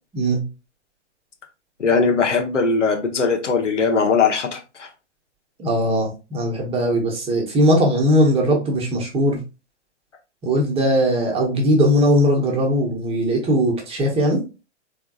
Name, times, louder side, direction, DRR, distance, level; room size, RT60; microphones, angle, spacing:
voice 1, 1.8-4.9, left 4 dB, 85° left, 2 dB, 1.2 m, -20 dB
voice 2, 5.6-9.4 10.4-14.4, equal, 15° right, 0 dB, 1.1 m, -19 dB
3.5 x 3.5 x 2.4 m, 0.29 s
figure-of-eight pair, 120°, 35 cm